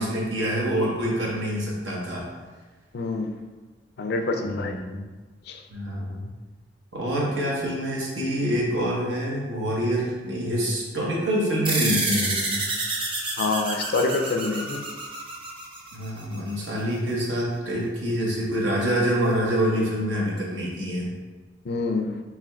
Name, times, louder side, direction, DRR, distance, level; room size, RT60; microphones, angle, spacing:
voice 1, 0.0-2.3 4.4-5.0 5.7-6.2 6.9-12.7 15.9-21.1, equal, 80° right, -5 dB, 1.1 m, -26 dB
voice 2, 2.9-3.4 4.0-4.8 5.5-5.6 13.4-14.8 21.7-22.2, left 3 dB, 60° left, 5 dB, 0.4 m, -26 dB
sound 1, 11.6-16.5, right 2 dB, 30° right, 0.6 m, -28 dB
4.8 x 3.6 x 2.3 m, 1.3 s
head